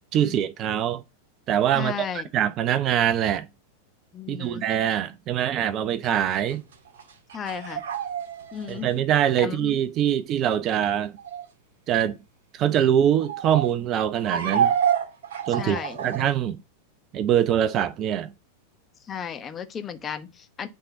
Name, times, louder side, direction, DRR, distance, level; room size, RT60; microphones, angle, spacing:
voice 1, 0.1-1.0 1.5-2.1 2.3-3.5 4.3-6.6 8.7-11.1 11.9-12.2 12.5-14.7 15.5-16.6 17.1-18.3, right 10 dB, 35° right, 0.6 m, -23 dB
voice 2, 1.7-2.3 4.1-4.6 7.3-7.8 8.5-9.0 9.4-9.7 15.5-16.0 19.1-20.7, left 7 dB, 25° left, 0.9 m, -34 dB
sound 1, 6.5-8.9 11.2-11.4 13.1-13.7 14.2-16.2, right 8 dB, 60° right, 1.7 m, -28 dB
9.0 x 3.8 x 4.7 m
figure-of-eight pair, 90°, 0 cm